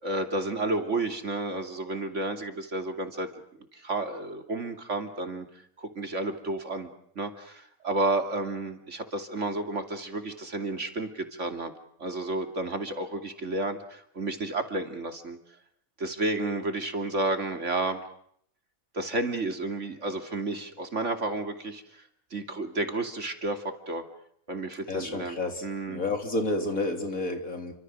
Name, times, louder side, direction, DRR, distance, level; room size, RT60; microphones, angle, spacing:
voice 1, 0.0-3.3 3.7-5.5 5.8-6.9 7.2-11.7 12.0-15.4 16.0-18.0 18.9-22.0 22.3-24.0 24.5-26.0, right 2 dB, 60° right, 6 dB, 3.2 m, -31 dB
voice 2, 24.9-27.7, left 2 dB, 80° left, 5 dB, 4.0 m, -30 dB
29.5 x 25.5 x 6.4 m, 0.68 s
omnidirectional pair, 1.4 m